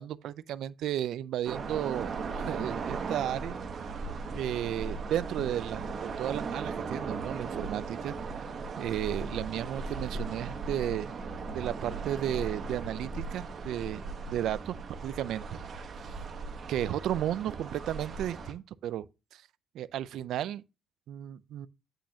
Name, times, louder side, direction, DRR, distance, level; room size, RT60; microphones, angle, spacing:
voice 1, 0.0-3.6 3.8-3.9 4.3-5.9 6.2-8.1 8.8-11.1 11.5-14.1 14.3-15.6 16.7-19.1 19.3-19.4 19.7-20.6 21.1-21.7, right 11 dB, 75° right, 0.4 m, -33 dB
sound 1, 1.5-18.5, right 4 dB, 45° right, 1.0 m, -37 dB
8.2 x 6.3 x 2.8 m
cardioid pair, 145°, 0 cm